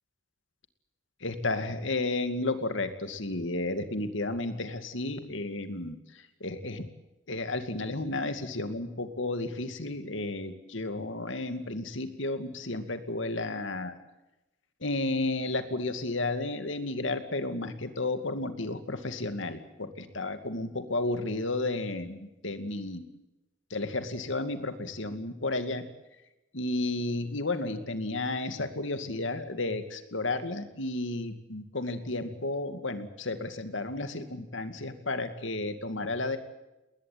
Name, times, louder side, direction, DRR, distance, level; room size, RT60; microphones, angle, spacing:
voice 1, 1.2-6.0 6.4-6.8 7.3-14.0 14.8-23.1 23.7-25.9 26.5-36.4, left 2 dB, 80° left, 9 dB, 2.4 m, -32 dB
21.0 x 19.5 x 9.5 m, 0.99 s
head